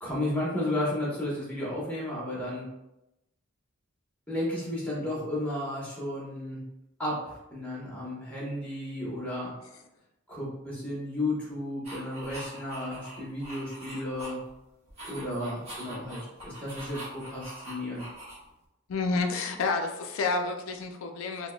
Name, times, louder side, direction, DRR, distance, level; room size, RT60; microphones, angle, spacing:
voice 1, 0.0-2.7 4.3-6.7 7.0-9.5 10.3-14.4 15.0-18.0, left 1 dB, 5° left, -6 dB, 1.0 m, -33 dB
sound 1, 11.8-14.6 14.9-18.6, equal, 30° right, 1.2 m, -43 dB
voice 2, 18.9-21.5, left 3 dB, 70° left, 4 dB, 0.4 m, -29 dB
3.6 x 2.1 x 2.3 m, 0.93 s
head